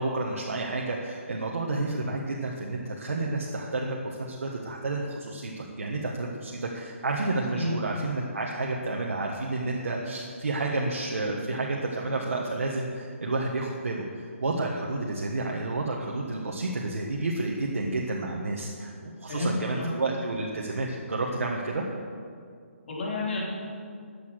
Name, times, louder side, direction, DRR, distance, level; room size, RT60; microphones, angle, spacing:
voice 1, 0.0-21.8, right 2 dB, 85° right, -2 dB, 1.6 m, -30 dB
voice 2, 19.3-19.9 22.9-23.4, left 2 dB, 55° left, -3 dB, 3.8 m, -30 dB
14.0 x 8.6 x 6.5 m, 2.3 s
hypercardioid pair, 170°, 7 cm